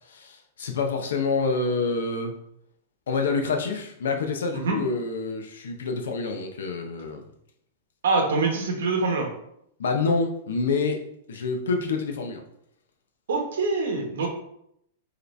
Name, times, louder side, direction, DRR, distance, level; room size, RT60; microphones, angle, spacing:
voice 1, 0.1-2.3 3.1-7.2 9.8-11.0 11.3-12.4, left 4 dB, 85° left, 4 dB, 0.9 m, -27 dB
voice 2, 8.0-9.3 13.3-14.3, right 3 dB, 70° right, 2 dB, 1.3 m, -24 dB
4.8 x 3.2 x 3.3 m, 0.74 s
supercardioid pair, 180°, 0 cm